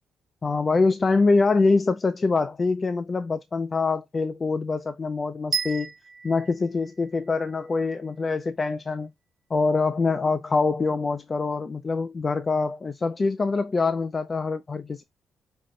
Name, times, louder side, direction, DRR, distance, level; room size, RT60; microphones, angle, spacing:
voice 1, 0.4-5.9 6.2-9.1 9.5-15.0, left 3 dB, 30° left, 0.4 m, -24 dB
sound 1, 5.5-7.6, right 5 dB, 35° right, 1.1 m, -32 dB
5.3 x 2.1 x 3.7 m
cardioid pair, 90°, 0 cm